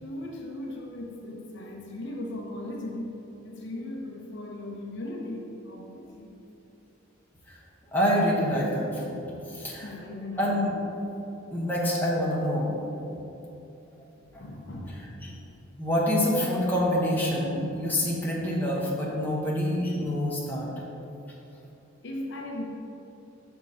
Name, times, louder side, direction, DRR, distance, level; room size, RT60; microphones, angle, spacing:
voice 1, 0.0-3.2 3.4-6.3 9.8-10.6 14.1-15.0 22.0-22.7, left 1 dB, 60° left, -1 dB, 0.7 m, -38 dB
voice 2, 7.9-9.2 9.5-9.9 10.4-10.7 11.5-12.7 14.3-14.4 15.2-15.3 15.8-20.7, equal, 10° left, -5 dB, 1.0 m, -26 dB
6.0 x 3.6 x 5.4 m, 3.0 s
head